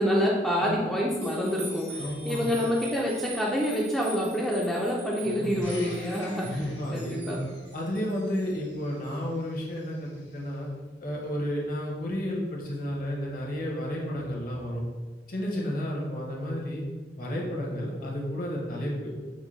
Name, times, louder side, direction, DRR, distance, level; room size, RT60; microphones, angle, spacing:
voice 1, 0.0-6.5 6.9-7.4, equal, ahead, -4 dB, 0.4 m, -27 dB
sound 1, 1.2-8.5 9.0-9.1, right 3 dB, 80° right, 1.0 m, -44 dB
voice 2, 2.0-2.5 5.2-5.7 6.4-7.4 7.7-10.7 11.0-14.9 15.3-16.8 17.2-19.1, equal, 50° left, -2 dB, 0.9 m, -32 dB
Domestic sounds home sounds, 5.6-10.5 11.2-11.3, left 1 dB, 75° left, 1.3 m, -47 dB
5.1 x 2.2 x 3.1 m, 1.3 s
head